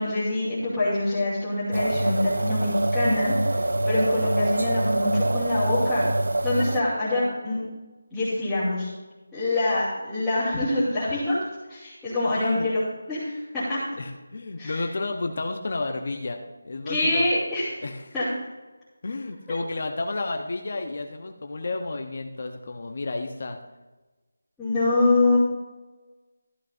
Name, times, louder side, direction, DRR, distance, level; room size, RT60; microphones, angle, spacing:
voice 1, 0.0-6.1 6.4-7.6 8.1-8.9 9.3-11.4 11.7-12.8 13.1-13.8 14.6-14.8 16.8-17.8 18.1-18.2 24.6-25.4, left 2 dB, ahead, -18 dB, 2.8 m, -25 dB
sound 1, 1.7-6.8, right 1 dB, 80° right, 0.5 m, -25 dB
voice 2, 12.4-12.7 13.9-16.4 16.6-17.3 17.8-18.1 19.0-23.6, left 3 dB, 45° left, 5 dB, 0.9 m, -31 dB
14.5 x 11.5 x 2.6 m, 1.2 s
figure-of-eight pair, 175°, 0 cm